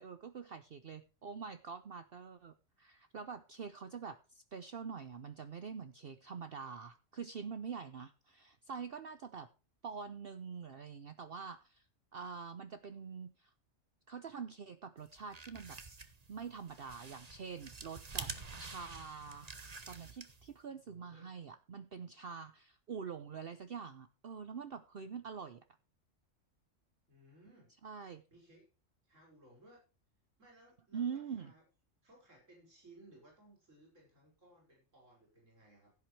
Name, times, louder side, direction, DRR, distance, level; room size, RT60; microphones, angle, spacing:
voice 1, 0.0-9.5 9.8-11.9 12.1-13.5 14.1-15.8 16.3-18.3 18.6-19.5 19.9-25.6 27.8-28.2 30.9-31.5, right 6 dB, 50° right, 11 dB, 0.9 m, -45 dB
sound 1, 15.1-20.6, right 4 dB, 30° right, 1.2 m, -48 dB
voice 2, 20.9-21.3 27.1-27.7 28.3-28.7 29.0-29.8 30.4-31.6 32.0-35.9, right 1 dB, 70° right, -2 dB, 5.9 m, -62 dB
16.0 x 9.1 x 3.2 m, 0.32 s
omnidirectional pair, 1.3 m